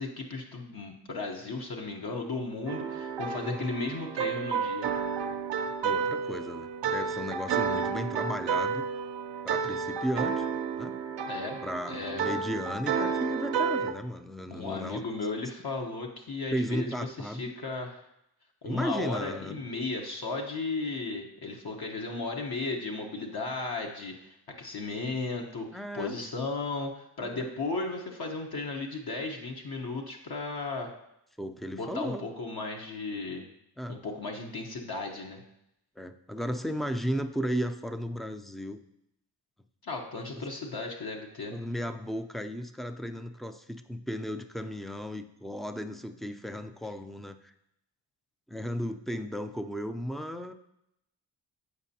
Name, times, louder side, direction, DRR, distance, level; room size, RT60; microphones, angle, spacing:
voice 1, 0.0-4.9 11.2-12.3 14.5-18.0 18.6-30.9 31.7-33.5 33.9-35.4 39.8-41.6, left 3 dB, 55° left, 1 dB, 0.9 m, -35 dB
sound 1, 2.7-13.9, right 6 dB, 70° right, 0.6 m, -31 dB
voice 2, 3.4-3.7 5.8-8.9 9.4-10.5 10.8-11.0 11.6-15.0 16.5-17.5 18.6-19.6 25.7-26.2 27.2-27.5 31.4-32.3 33.8-34.0 36.0-38.8 40.4-40.5 41.5-47.5 48.5-50.5, equal, ahead, 8 dB, 0.4 m, -35 dB
8.1 x 5.0 x 2.7 m, 0.82 s
cardioid pair, 45°, 43 cm